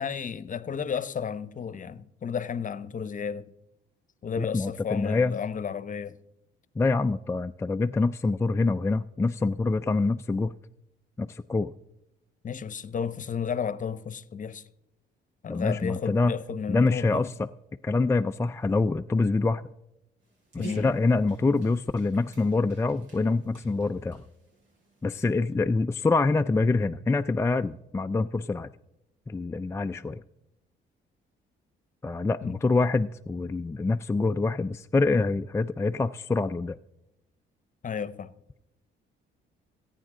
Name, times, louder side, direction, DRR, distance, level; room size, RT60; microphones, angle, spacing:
voice 1, 0.0-3.5 4.2-6.2 12.4-14.7 15.4-17.3 20.6-20.9 32.4-32.6 37.8-38.3, left 7 dB, 40° left, 0.8 m, -33 dB
voice 2, 4.4-5.4 6.8-10.5 11.2-11.7 15.5-16.3 16.7-17.5 17.8-19.6 20.5-24.2 25.0-28.7 29.3-30.2 32.0-36.8, left 3 dB, 15° left, 0.4 m, -25 dB
Dog, 20.2-25.5, right 3 dB, 70° right, 6.2 m, -48 dB
25.5 x 9.0 x 3.7 m
cardioid pair, 90°, 20 cm